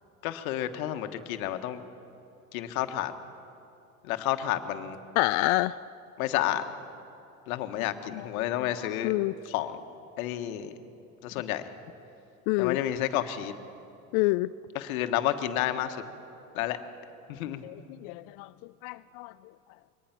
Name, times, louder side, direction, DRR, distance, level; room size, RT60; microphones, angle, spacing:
voice 1, 0.2-1.8 2.5-3.1 4.0-5.0 6.2-6.6 7.5-9.1 9.4-9.8 10.2-10.7 11.2-11.6 12.6-13.5 14.7-16.0 16.5-16.8 17.3-17.6, left 12 dB, 75° left, 8 dB, 1.4 m, -30 dB
voice 2, 5.2-5.8 9.0-9.3 12.5-12.8 14.1-14.5 17.6-17.7 18.0-18.5 18.8-19.3, left 21 dB, 55° left, 13 dB, 0.4 m, -27 dB
23.5 x 19.0 x 5.9 m, 2.7 s
hypercardioid pair, 95°, 43 cm